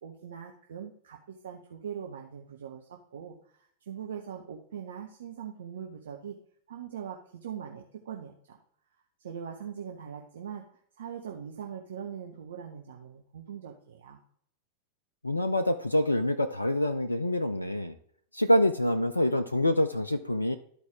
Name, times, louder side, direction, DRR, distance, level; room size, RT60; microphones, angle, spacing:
voice 1, 0.0-6.4 6.7-8.6 9.2-10.6 11.0-14.2, right 8 dB, 65° right, 2 dB, 0.9 m, -41 dB
voice 2, 15.2-17.9 18.3-20.6, left 1 dB, 85° left, 10 dB, 0.4 m, -26 dB
12.5 x 4.5 x 3.5 m, 0.64 s
figure-of-eight pair, 90°, 0 cm